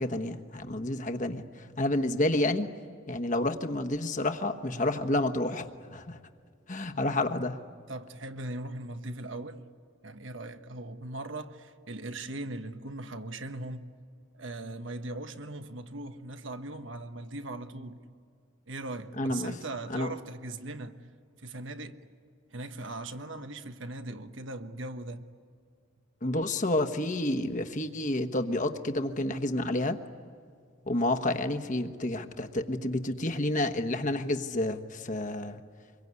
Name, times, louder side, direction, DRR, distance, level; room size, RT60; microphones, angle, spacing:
voice 1, 0.0-2.7 3.1-6.2 6.7-7.6 19.2-19.6 19.9-20.1 26.2-30.0 30.9-35.6, left 1 dB, 40° left, 1.2 m, -29 dB
voice 2, 7.9-9.6 10.0-13.9 14.3-18.0 18.7-21.0 21.4-22.0 22.5-25.2, right 2 dB, 70° right, 1.3 m, -39 dB
26.0 x 23.0 x 9.6 m
head